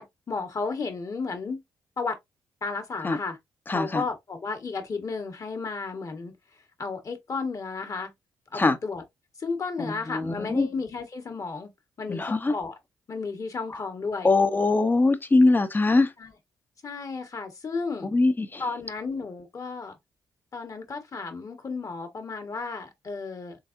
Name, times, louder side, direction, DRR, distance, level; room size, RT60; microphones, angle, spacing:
voice 1, 0.0-1.6 2.0-2.1 2.6-3.4 3.7-6.3 6.8-8.1 8.5-9.0 9.4-11.7 12.0-12.7 13.1-14.3 16.2-16.3 16.8-18.1 18.6-19.9 20.5-23.6, left 4 dB, 45° left, 1.5 m, -33 dB
voice 2, 3.7-4.0 8.5-8.8 9.8-10.7 12.1-12.5 13.7-13.8 14.2-16.1 18.0-18.6, left 3 dB, 25° left, 0.8 m, -22 dB
4.0 x 3.5 x 2.6 m
cardioid pair, 70°, 8 cm